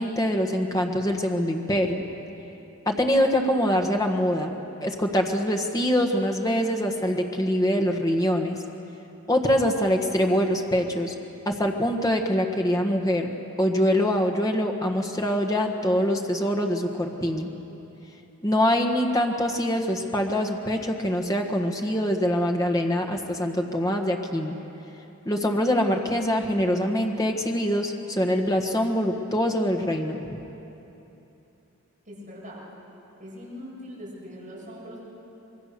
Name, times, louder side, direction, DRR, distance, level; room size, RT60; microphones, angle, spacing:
voice 1, 0.0-2.0 2.8-4.6 4.8-8.6 9.3-11.1 11.4-13.3 13.6-17.5 18.4-24.6 25.2-30.4, equal, 15° left, 3 dB, 1.5 m, -24 dB
voice 2, 32.0-32.6 33.2-35.0, equal, 35° right, -7 dB, 7.8 m, -41 dB
26.0 x 22.0 x 6.8 m, 3.0 s
head